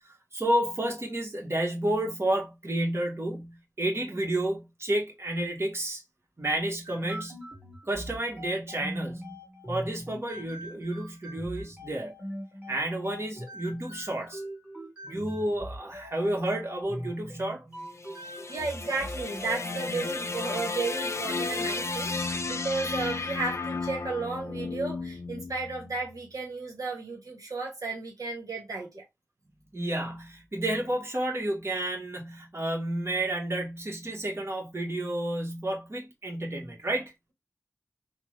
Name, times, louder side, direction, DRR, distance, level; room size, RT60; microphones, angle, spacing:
voice 1, 0.0-6.0 6.4-7.4 7.8-9.4 9.7-12.1 12.7-14.4 15.0-17.6 18.5-18.6 29.7-37.1, right 1 dB, 45° right, 1.1 m, -31 dB
sound 1, 6.8-20.1, equal, 25° right, 1.8 m, -42 dB
sound 2, 17.8-26.1, left 3 dB, 55° left, 0.4 m, -33 dB
voice 2, 18.5-29.0, right 3 dB, 80° right, 0.9 m, -34 dB
3.4 x 2.0 x 3.1 m
wide cardioid pair, 45°, 6 cm